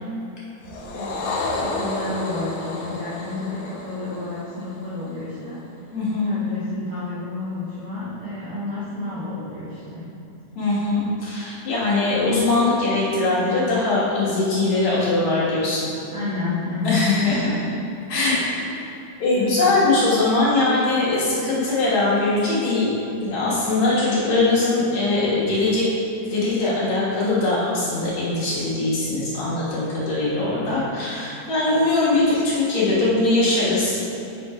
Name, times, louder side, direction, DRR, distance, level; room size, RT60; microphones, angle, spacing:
sound 1, 0.6-5.2, left 3 dB, 90° left, 2.4 m, -31 dB
voice 1, 0.7-1.2 1.6-5.6 6.2-10.1 16.1-17.7 18.5-18.8 19.3-19.7, left 2 dB, 60° right, -10 dB, 1.5 m, -30 dB
voice 2, 5.9-6.4 10.6-15.9 16.8-17.5 18.1-18.4 19.2-22.9 23.2-25.9 26.2-34.1, left 2 dB, 60° left, -8 dB, 2.4 m, -21 dB
6.6 x 4.3 x 4.8 m, 2.8 s
omnidirectional pair, 3.9 m